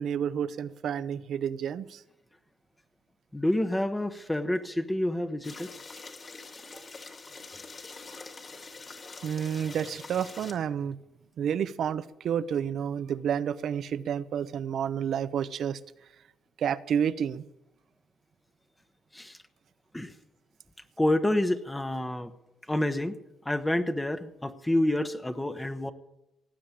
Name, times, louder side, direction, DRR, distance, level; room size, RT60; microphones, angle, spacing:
voice 1, 0.0-2.0 9.2-11.0 11.4-15.8 16.6-17.4, right 8 dB, 65° right, 0.7 m, -30 dB
voice 2, 3.3-5.7 19.1-19.4 19.9-20.1 21.0-22.3 22.7-23.2 23.4-25.9, left 1 dB, 10° left, 1.0 m, -28 dB
sound 1, 5.4-10.5, left 3 dB, 35° left, 2.2 m, -45 dB
17.5 x 7.7 x 8.7 m
cardioid pair, 90°, 0 cm